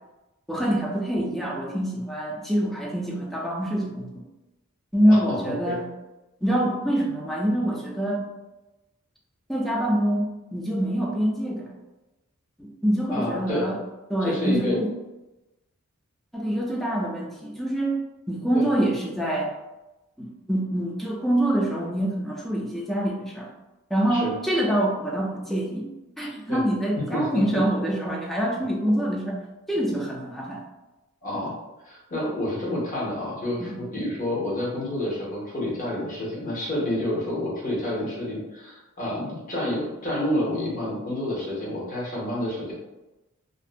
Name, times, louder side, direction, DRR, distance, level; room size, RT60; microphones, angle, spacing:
voice 1, 0.5-4.2 4.9-5.9 6.4-8.2 9.5-11.8 12.6-13.8 14.1-14.9 16.3-18.0 18.3-19.5 20.2-23.5 23.9-25.9 26.2-29.4 29.7-30.6 33.6-33.8, right 1 dB, ahead, -2 dB, 0.3 m, -25 dB
voice 2, 5.1-5.8 13.1-13.7 14.2-14.8 18.5-18.7 24.1-24.3 26.5-26.6 27.0-27.4 31.2-31.6 31.8-42.7, left 1 dB, 40° left, -5 dB, 0.8 m, -29 dB
2.5 x 2.0 x 2.4 m, 1.0 s
head